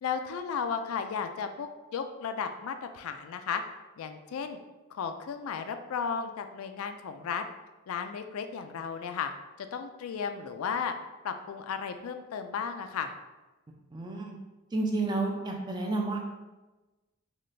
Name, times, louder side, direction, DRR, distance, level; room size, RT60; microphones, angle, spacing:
voice 1, 0.0-3.6 4.0-4.6 4.9-7.4 7.9-9.3 9.6-10.9 11.2-13.1, left 6 dB, 75° left, 7 dB, 0.3 m, -34 dB
voice 2, 13.9-14.3 14.7-16.2, right 2 dB, 20° right, 1 dB, 0.4 m, -30 dB
4.0 x 2.3 x 3.2 m, 1.1 s
head